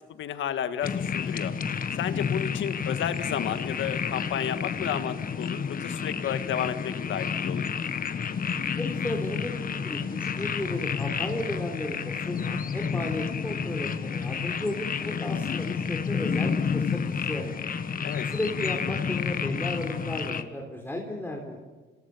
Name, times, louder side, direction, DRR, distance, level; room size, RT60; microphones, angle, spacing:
voice 1, 0.2-1.5 2.0-7.6 18.0-18.3, left 9 dB, 75° left, 10 dB, 1.7 m, -32 dB
sound 1, 0.8-20.4, left 6 dB, 45° left, 1.5 m, -30 dB
voice 2, 8.8-17.5 18.2-21.6, left 1 dB, 10° left, 0 dB, 3.7 m, -34 dB
26.5 x 18.0 x 7.2 m, 1.3 s
cardioid pair, 90°, 20 cm